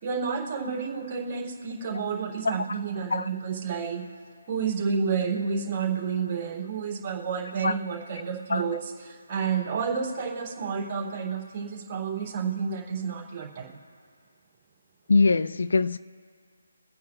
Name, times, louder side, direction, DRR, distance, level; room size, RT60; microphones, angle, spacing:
voice 1, 0.0-4.1 4.5-13.7, right 6 dB, 25° right, 3.1 m, -30 dB
voice 2, 15.1-16.0, left 4 dB, 55° left, 0.4 m, -22 dB
24.0 x 9.4 x 2.5 m
figure-of-eight pair, 145°, 0 cm